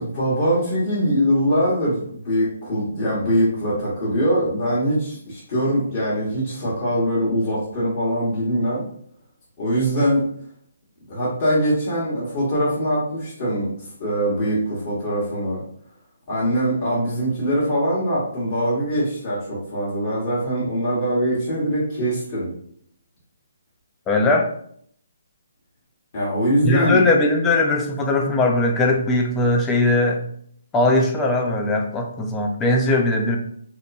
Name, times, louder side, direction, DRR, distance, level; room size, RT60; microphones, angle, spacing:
voice 1, 0.0-8.8 9.6-10.2 11.1-15.6 16.3-22.5 26.1-27.0, equal, 45° left, -8 dB, 1.1 m, -22 dB
voice 2, 24.1-24.5 26.6-30.2 30.7-33.4, left 2 dB, 15° left, 2 dB, 0.4 m, -19 dB
2.8 x 2.1 x 2.5 m, 0.65 s
figure-of-eight pair, 145°, 0 cm